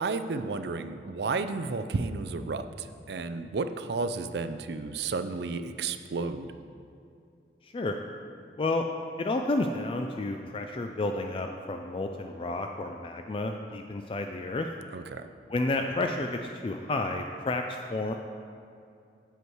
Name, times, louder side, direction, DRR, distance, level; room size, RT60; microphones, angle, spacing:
voice 1, 0.0-6.5 14.9-15.3, right 4 dB, 70° right, 9 dB, 0.5 m, -32 dB
voice 2, 7.6-8.0 8.6-8.9 9.2-14.7 15.5-18.1, left 2 dB, 30° left, 4 dB, 0.3 m, -31 dB
8.1 x 8.0 x 4.6 m, 2.5 s
head